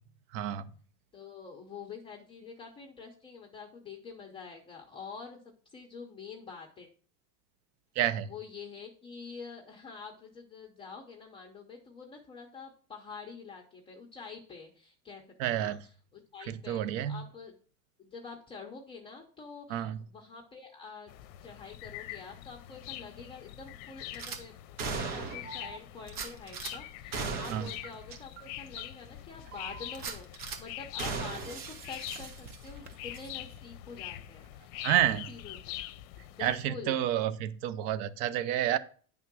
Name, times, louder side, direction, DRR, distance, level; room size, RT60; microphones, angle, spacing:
voice 1, 0.3-0.7 8.0-8.3 15.4-15.8 16.5-17.2 19.7-20.0 27.5-27.7 34.8-35.2 36.4-38.8, right 11 dB, 60° right, 15 dB, 0.7 m, -29 dB
voice 2, 1.1-6.9 8.2-17.6 18.0-21.1 21.4-35.6 36.3-37.0, left 5 dB, 10° left, -2 dB, 0.6 m, -47 dB
sound 1, 21.1-36.7, left 14 dB, 65° left, 0.6 m, -44 dB
Gunshot gunfire / Glass, 24.1-24.4 24.8-25.5 26.1-26.7 27.1-27.8 28.1-28.2 28.7-28.8 29.9-30.6 31.0-32.8 33.1-33.3, right 4 dB, 85° right, 1.6 m, -37 dB
Alarm, 25.4-33.6 34.0-35.2, right 3 dB, 25° right, 0.3 m, -52 dB
9.4 x 3.7 x 6.0 m, 0.43 s
cardioid pair, 170°, 44 cm